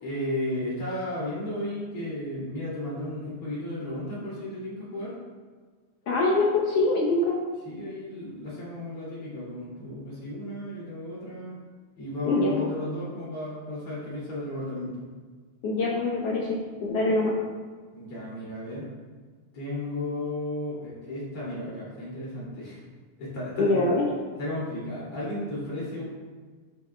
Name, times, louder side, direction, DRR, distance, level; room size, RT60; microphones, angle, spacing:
voice 1, 0.0-5.1 7.7-11.6 12.0-15.0 17.9-18.9 19.5-22.8 23.2-23.8 24.3-26.0, left 1 dB, 50° left, -7 dB, 3.4 m, -34 dB
voice 2, 6.1-7.4 12.3-12.7 15.6-17.3 23.6-24.0, left 2 dB, 65° left, -3 dB, 1.6 m, -24 dB
12.0 x 6.9 x 2.3 m, 1.5 s
omnidirectional pair, 3.6 m